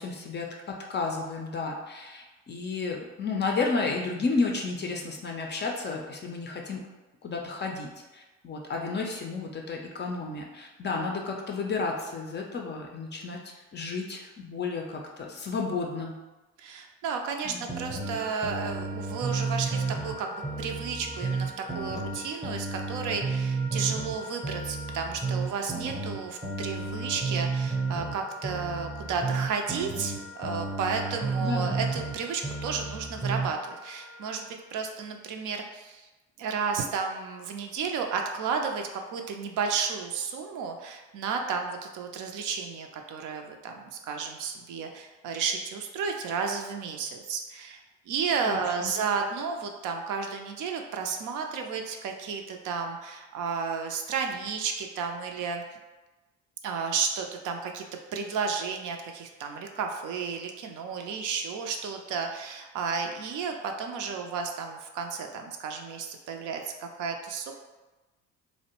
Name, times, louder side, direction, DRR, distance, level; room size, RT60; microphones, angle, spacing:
voice 1, 0.0-6.8 7.2-16.2 17.4-17.7 31.4-31.8 48.5-48.9, left 4 dB, 30° left, 1 dB, 0.4 m, -32 dB
voice 2, 16.6-36.1 36.4-47.8 48.1-55.6 56.6-57.8 58.1-67.5, right 5 dB, 55° right, 3 dB, 0.4 m, -32 dB
sound 1, 17.7-20.2 20.4-24.2 24.4-28.2 28.4-32.2 32.4-33.5, right 4 dB, 10° right, 0.7 m, -32 dB
Wind instrument woodwind instrument, 17.9-34.5, left 1 dB, 85° right, 0.7 m, -45 dB
2.5 x 2.0 x 2.9 m, 1.1 s
hypercardioid pair, 55°, 39 cm